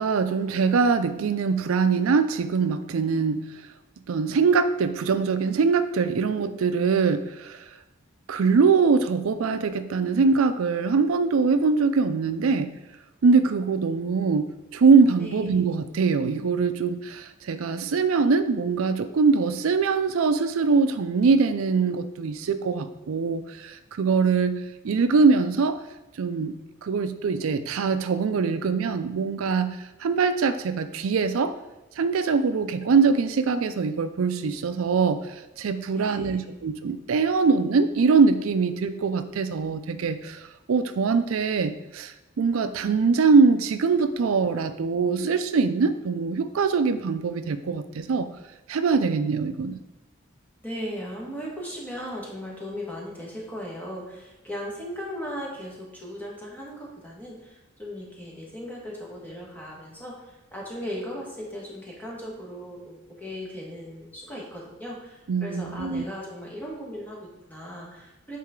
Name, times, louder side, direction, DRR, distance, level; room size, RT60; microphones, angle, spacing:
voice 1, 0.0-3.5 4.1-7.6 8.3-12.7 13.2-25.8 26.2-26.6 26.8-31.5 32.0-48.3 48.7-49.8 65.3-66.0, right 5 dB, 85° right, 10 dB, 0.4 m, -23 dB
voice 2, 15.2-15.6 35.9-36.6 50.6-68.4, equal, 10° left, -4 dB, 1.5 m, -37 dB
8.5 x 4.1 x 3.7 m, 1.0 s
head